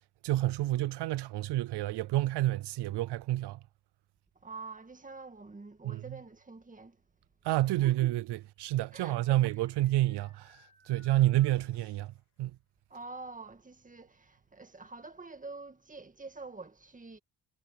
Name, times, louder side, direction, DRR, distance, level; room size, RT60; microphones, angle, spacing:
voice 1, 0.2-3.6 5.8-6.0 7.4-12.5, right 15 dB, 85° right, 0.6 m, -29 dB
voice 2, 4.4-7.0 7.8-8.0 8.9-9.4 12.9-17.2, right 3 dB, 20° right, 1.9 m, -46 dB
sound 1, 8.7-12.2, left 6 dB, 45° left, 4.2 m, -64 dB
cardioid pair, 105°, 39 cm